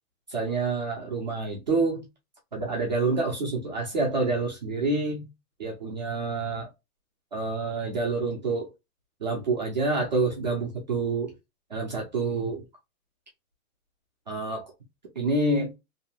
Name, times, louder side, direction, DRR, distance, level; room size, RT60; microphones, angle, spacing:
voice 1, 0.3-2.1 2.5-5.3 5.6-6.7 7.3-8.7 9.2-11.3 11.7-12.6 14.3-14.6 15.2-15.7, right 3 dB, 30° right, 0.6 m, -27 dB
2.8 x 2.3 x 2.7 m
hypercardioid pair, 175°, 44 cm